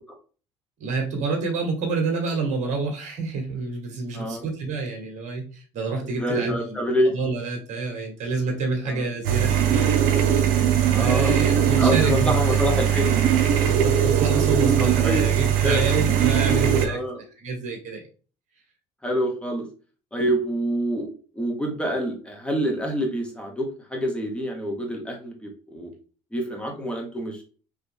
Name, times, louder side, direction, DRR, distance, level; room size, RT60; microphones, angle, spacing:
voice 1, 0.8-6.6 7.0-10.6 10.9-12.7 13.6-18.0, right 4 dB, 55° right, 1 dB, 1.8 m, -28 dB
voice 2, 6.1-7.1 8.8-9.1 10.9-11.5 11.8-13.4 14.8-15.9 16.9-17.2 19.0-19.7 20.1-21.1 21.3-25.9 26.3-27.4, equal, 5° left, 1 dB, 1.7 m, -27 dB
sound 1, 9.2-16.9, right 9 dB, 75° right, 1.0 m, -20 dB
4.6 x 3.1 x 3.5 m, 0.37 s
supercardioid pair, 75°, 15 cm